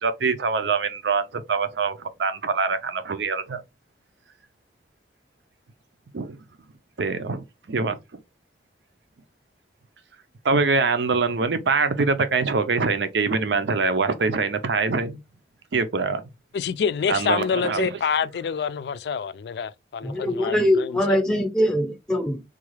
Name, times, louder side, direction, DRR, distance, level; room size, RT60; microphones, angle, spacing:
voice 1, 0.0-3.6 6.1-6.4 7.0-8.0 10.4-15.2 15.7-16.3 17.1-17.9, right 4 dB, 85° right, 0.6 m, -24 dB
voice 2, 16.5-21.2, left 6 dB, 70° left, 0.3 m, -27 dB
voice 3, 20.0-22.4, left 1 dB, 5° left, 0.6 m, -22 dB
3.7 x 2.4 x 3.1 m
head